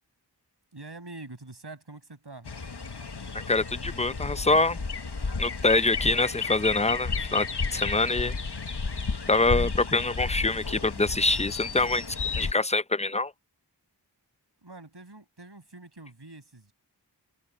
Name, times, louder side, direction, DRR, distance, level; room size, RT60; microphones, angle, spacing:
voice 1, 0.7-2.5 14.6-16.7, right 2 dB, 65° right, 7.5 m, -45 dB
sound 1, 2.5-12.5, left 4 dB, 65° left, 1.5 m, -33 dB
voice 2, 3.3-4.8 5.4-7.5 7.7-8.3 9.3-12.0 12.3-13.3, left 2 dB, 15° left, 0.6 m, -25 dB
wide cardioid pair, 45°, 43 cm